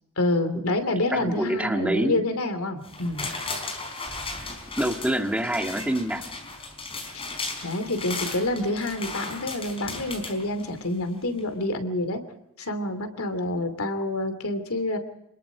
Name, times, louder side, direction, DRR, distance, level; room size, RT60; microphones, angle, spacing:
voice 1, 0.2-3.3 7.1-7.2 7.6-12.2 12.6-15.0, left 2 dB, 90° left, 9 dB, 2.7 m, -27 dB
voice 2, 1.1-2.2 4.8-6.2, right 1 dB, 5° right, 4 dB, 1.9 m, -26 dB
sound 1, 2.8-11.0 11.4-11.5, left 3 dB, 25° left, 4.4 m, -36 dB
28.0 x 21.0 x 5.0 m, 0.82 s
head